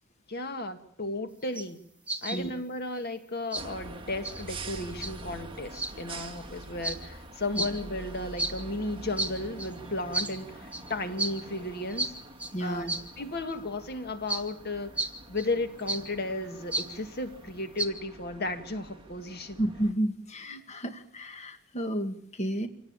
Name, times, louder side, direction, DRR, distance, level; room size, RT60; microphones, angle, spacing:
voice 1, 0.3-1.8 2.2-12.1 12.6-12.9 13.2-14.9 15.3-19.6, left 2 dB, 50° left, 8 dB, 1.9 m, -34 dB
sound 1, 1.4-1.7 2.1-2.4 2.9-3.0 3.5-3.6 4.2-4.4 5.0-5.1 5.7-5.9 6.8-7.0 7.5-7.7 8.4-8.5 9.2-9.3 9.6-9.7 10.1-10.3 10.7-10.9 11.2-11.3 11.9-12.1 12.4-12.5 12.9-13.0 13.5-13.6 14.3-14.4 15.0-15.1 15.4-15.5 15.8-16.0 16.7-16.9 17.8-17.9, right 2 dB, 5° right, 1.8 m, -32 dB
sound 2, 3.6-19.9, right 2 dB, 25° right, 2.6 m, -45 dB
voice 2, 12.5-12.9 19.6-22.7, right 1 dB, 35° left, 7 dB, 1.9 m, -32 dB
26.5 x 18.5 x 8.9 m, 0.70 s
head